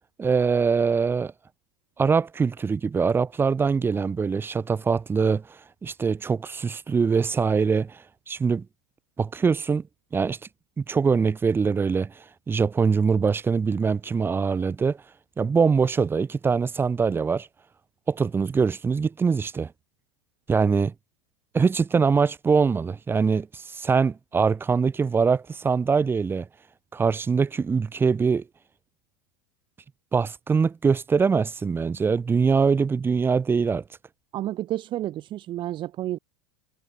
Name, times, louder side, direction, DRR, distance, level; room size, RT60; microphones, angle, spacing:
voice 1, 0.2-1.3 2.0-5.4 5.8-8.7 9.2-9.8 10.1-10.4 10.8-12.1 12.5-15.0 15.4-17.5 18.1-19.7 20.5-20.9 21.5-26.5 26.9-28.4 30.1-33.8, right 5 dB, 15° right, 7.8 m, -23 dB
voice 2, 34.3-36.2, right 14 dB, 35° right, 3.8 m, -30 dB
supercardioid pair, 140°, 14 cm